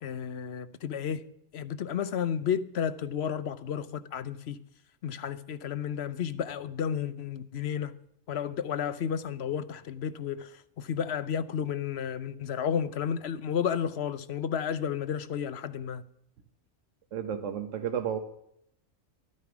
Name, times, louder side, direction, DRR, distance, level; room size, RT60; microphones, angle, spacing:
voice 1, 0.0-1.2 1.5-4.6 5.0-7.9 8.3-10.5 10.8-16.0, left 8 dB, 60° left, 0.9 m, -32 dB
voice 2, 17.1-18.2, right 8 dB, 75° right, 1.2 m, -32 dB
13.0 x 9.4 x 6.0 m
omnidirectional pair, 1.3 m